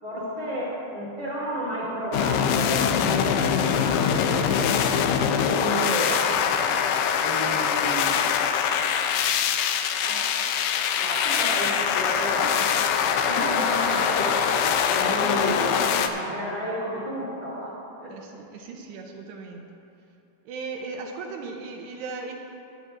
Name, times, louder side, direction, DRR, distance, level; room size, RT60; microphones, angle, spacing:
voice 1, 0.0-4.3 5.5-6.8 7.1-8.3 10.0-10.2 10.9-15.6 16.1-18.1, equal, 10° left, -7 dB, 1.6 m, -32 dB
sound 1, 2.1-16.1, left 7 dB, 85° left, 2.2 m, -23 dB
voice 2, 15.2-16.5 18.1-19.6 20.5-22.3, right 4 dB, 80° right, 2 dB, 2.6 m, -37 dB
18.0 x 10.5 x 2.5 m, 2.8 s
omnidirectional pair, 5.0 m